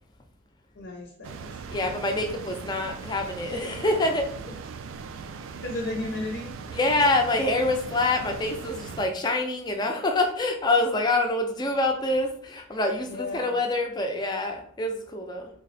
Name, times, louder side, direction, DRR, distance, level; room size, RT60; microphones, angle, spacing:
voice 1, 0.7-1.6 5.6-6.5 13.1-13.6, left 2 dB, 60° left, -1 dB, 0.6 m, -34 dB
sound 1, 1.2-9.1, right 5 dB, 70° right, 0.3 m, -39 dB
voice 2, 1.7-4.2 6.7-15.5, left 2 dB, 20° left, 3 dB, 0.4 m, -26 dB
3.4 x 2.0 x 4.0 m, 0.64 s
head